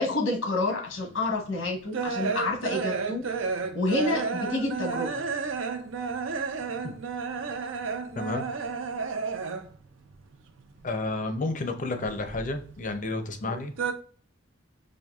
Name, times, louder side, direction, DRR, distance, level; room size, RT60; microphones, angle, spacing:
voice 1, 0.0-5.2 13.4-13.6, left 2 dB, 90° left, 1 dB, 1.1 m, -29 dB
sound 1, 1.1-9.9 10.1-11.3 11.6-13.0 13.3-13.9, right 5 dB, 75° right, 0.5 m, -32 dB
voice 2, 10.8-13.7, left 2 dB, 40° left, 7 dB, 0.5 m, -31 dB
4.3 x 2.6 x 2.3 m, 0.44 s
head